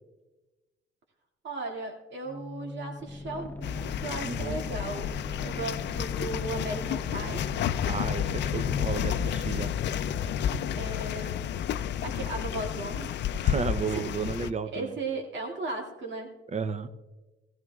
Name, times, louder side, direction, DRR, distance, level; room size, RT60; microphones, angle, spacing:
voice 1, 1.4-5.1 5.4-7.5 10.8-11.6 12.0-13.3 13.9-14.0 14.7-16.3, right 2 dB, 65° right, 1 dB, 2.2 m, -36 dB
sound 1, 2.3-10.9, left 2 dB, 10° left, 0.5 m, -41 dB
sound 2, 3.6-14.5, left 9 dB, 65° left, 0.4 m, -31 dB
voice 2, 4.2-4.6 7.9-9.7 13.4-15.0 16.5-16.9, right 5 dB, 35° right, 13 dB, 0.7 m, -33 dB
15.5 x 15.5 x 2.4 m, 1.2 s
cardioid pair, 90°, 20 cm